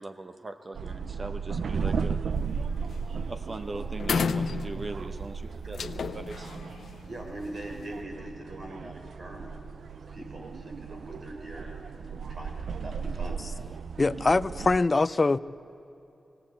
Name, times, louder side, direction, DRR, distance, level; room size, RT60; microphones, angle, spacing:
voice 1, 0.0-2.2 3.3-6.6 6.9-7.0, right 2 dB, 35° right, 0.9 m, -40 dB
sound 1, 0.7-14.8, right 5 dB, 80° right, 0.4 m, -35 dB
sound 2, 2.3-2.6 2.9-3.2 3.5-3.6 4.0-5.1 5.7-7.8, left 6 dB, 85° left, 0.6 m, -32 dB
voice 2, 7.0-13.4, right 1 dB, 55° right, 4.1 m, -42 dB
voice 3, 14.0-15.4, left 3 dB, 35° left, 0.4 m, -23 dB
18.5 x 17.5 x 8.5 m
wide cardioid pair, 105°, 0 cm